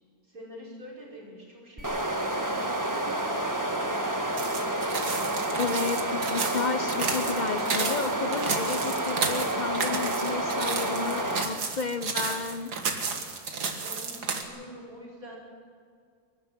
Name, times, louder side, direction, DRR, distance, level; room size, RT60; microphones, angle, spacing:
voice 1, 0.3-2.3 2.9-4.6 13.8-15.4, right 1 dB, 60° right, -2 dB, 5.8 m, -45 dB
sound 1, 1.8-11.4, right 1 dB, 10° right, 1.4 m, -29 dB
sound 2, 4.4-14.4, right 4 dB, 85° right, 2.3 m, -32 dB
voice 2, 5.6-12.7, left 5 dB, 55° left, 10 dB, 0.5 m, -32 dB
24.0 x 11.5 x 9.7 m, 2.2 s
omnidirectional pair, 1.7 m